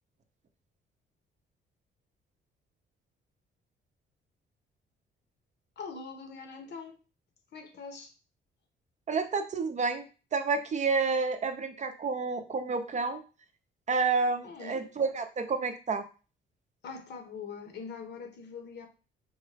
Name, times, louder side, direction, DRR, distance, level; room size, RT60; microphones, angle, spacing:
voice 1, 5.8-7.0 7.5-8.1 14.4-14.9 16.8-18.9, left 5 dB, 60° left, 0.9 m, -43 dB
voice 2, 9.1-10.0 10.3-13.2 13.9-16.0, right 4 dB, 35° right, 0.5 m, -29 dB
3.9 x 2.2 x 3.3 m
cardioid pair, 90°, 20 cm